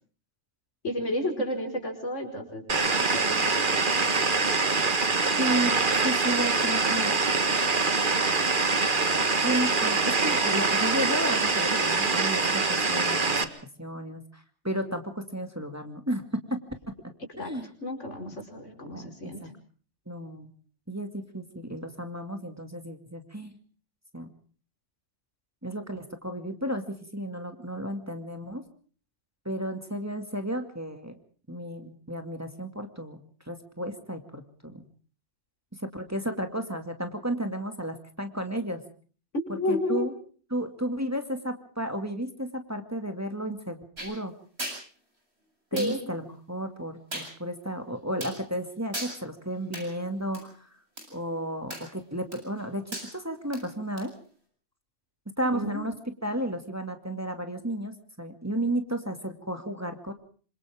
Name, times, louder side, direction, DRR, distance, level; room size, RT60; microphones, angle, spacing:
voice 1, 0.8-4.2 17.4-17.5 17.8-19.4 39.3-40.1 45.7-46.0 55.4-55.9, left 1 dB, 85° left, 3 dB, 5.5 m, -32 dB
sound 1, 2.7-13.4, right 4 dB, 45° right, 1.7 m, -24 dB
voice 2, 5.4-5.7 6.0-7.2 9.4-13.2 13.8-16.6 16.9-17.7 18.9-19.5 20.1-20.5 20.9-23.6 24.1-24.3 25.6-28.6 29.4-31.2 31.5-33.2 33.5-34.8 35.8-38.8 39.5-40.1 40.5-44.3 45.7-50.7 51.1-54.1 55.4-55.9 56.2-60.1, right 1 dB, 15° right, 5 dB, 2.3 m, -33 dB
sound 2, 44.0-44.1 44.6-44.8 45.8-45.9 47.1-47.3 48.2-48.4 48.9-49.1 49.7-49.9 50.3-50.4 51.0-51.1 51.7-52.0 52.3-52.6 52.9-53.1 53.5-53.6 54.0-54.1, right 1 dB, 60° right, 8.1 m, -36 dB
27.0 x 26.0 x 3.6 m, 0.43 s
omnidirectional pair, 1.2 m